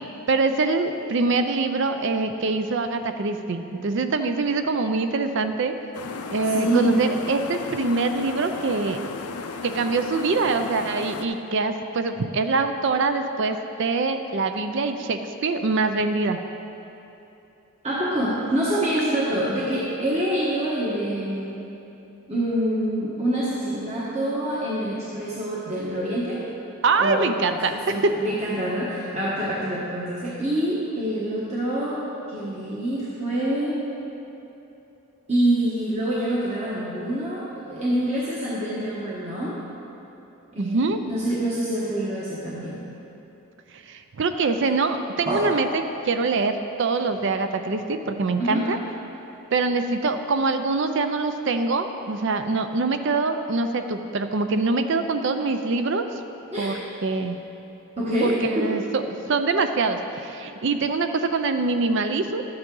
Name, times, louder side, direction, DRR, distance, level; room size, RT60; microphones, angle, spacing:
voice 1, 0.3-5.7 6.3-9.0 9.6-16.4 26.8-28.2 40.6-41.0 43.9-48.8 49.5-56.0 56.6-56.8 57.0-57.4 58.2-62.4, right 3 dB, 55° right, 8 dB, 0.4 m, -24 dB
sound 1, 5.9-11.2, left 4 dB, 85° left, 0.6 m, -35 dB
voice 2, 6.5-7.0 17.8-21.6 22.3-26.4 27.0-33.8 35.3-39.6 40.5-40.8 41.1-42.8 45.2-45.4 48.4-48.7 56.5-56.7 58.0-58.8, right 1 dB, 30° right, -8 dB, 1.1 m, -26 dB
12.0 x 8.7 x 3.8 m, 2.9 s
head